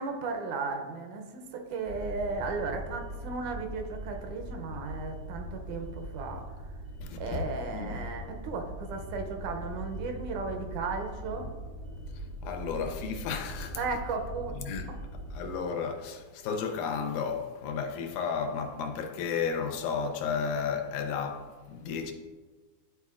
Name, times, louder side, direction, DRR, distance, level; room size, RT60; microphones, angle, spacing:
voice 1, 0.0-6.4 7.2-11.5 13.8-14.6, right 4 dB, 80° right, 2.1 m, -35 dB
sound 1, 1.8-15.6, right 1 dB, 65° right, 0.6 m, -41 dB
voice 2, 7.0-7.4 7.7-8.0 12.4-13.8 14.6-14.9 15.3-22.1, left 6 dB, 80° left, 2.1 m, -33 dB
11.0 x 4.1 x 2.4 m
omnidirectional pair, 3.5 m